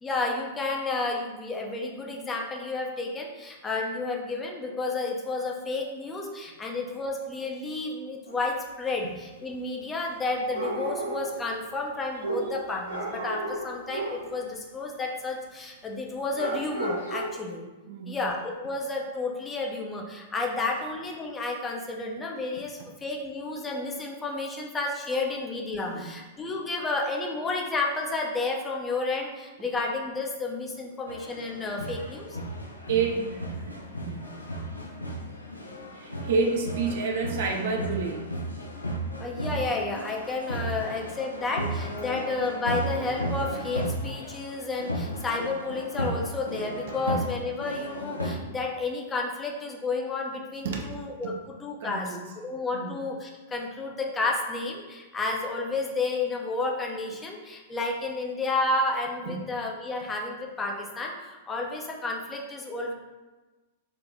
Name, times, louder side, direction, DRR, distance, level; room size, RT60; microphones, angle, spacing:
voice 1, 0.0-17.7 18.1-32.4 39.2-62.9, left 3 dB, 15° left, 0 dB, 0.7 m, -31 dB
sound 1, 8.3-8.4 10.5-11.4 12.2-14.3 16.3-17.2, right 2 dB, 85° right, 1.1 m, -33 dB
voice 2, 17.9-18.2 25.8-26.1 32.9-34.3 35.9-38.3 46.9-47.0 50.6-50.9 51.8-52.2 52.7-52.9 59.3-59.5, right 4 dB, 55° right, 1 dB, 0.6 m, -29 dB
sound 2, 31.1-48.4, equal, 85° left, 0.5 m, -34 dB
3.8 x 2.9 x 3.5 m, 1.2 s
figure-of-eight pair, 100°, 0 cm